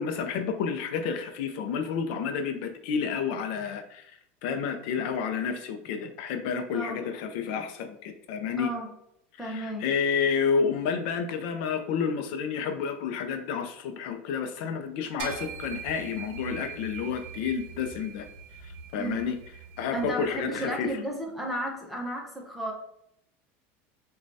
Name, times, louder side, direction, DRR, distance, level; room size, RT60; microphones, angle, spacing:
voice 1, 0.0-8.7 9.4-18.3 18.6-19.4 19.8-21.0, left 6 dB, 65° left, 7 dB, 0.4 m, -30 dB
voice 2, 6.7-7.0 8.6-8.9 9.4-9.9 19.0-19.3 19.9-22.7, right 1 dB, ahead, -2 dB, 0.7 m, -33 dB
sound 1, 15.2-20.8, right 6 dB, 55° right, 0.7 m, -42 dB
6.1 x 2.2 x 2.6 m, 0.75 s
supercardioid pair, 160°, 6 cm